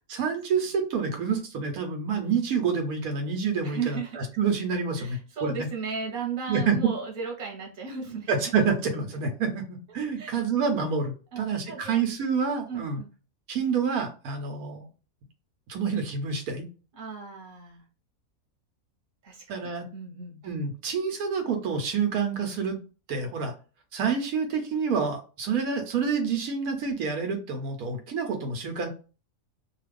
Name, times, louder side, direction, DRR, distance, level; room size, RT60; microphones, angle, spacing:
voice 1, 0.1-5.7 6.5-6.8 8.3-9.6 9.9-13.0 13.5-14.9 15.7-16.6 19.5-19.9 20.4-22.8 23.1-23.5 23.9-28.9, right 5 dB, 85° right, 4 dB, 1.2 m, -28 dB
voice 2, 3.6-4.2 5.0-8.3 10.2-10.3 11.3-12.0 12.7-13.1 16.9-17.8 19.2-20.4, right 5 dB, 40° right, -1 dB, 1.1 m, -35 dB
2.7 x 2.4 x 3.3 m, 0.34 s
omnidirectional pair, 1.5 m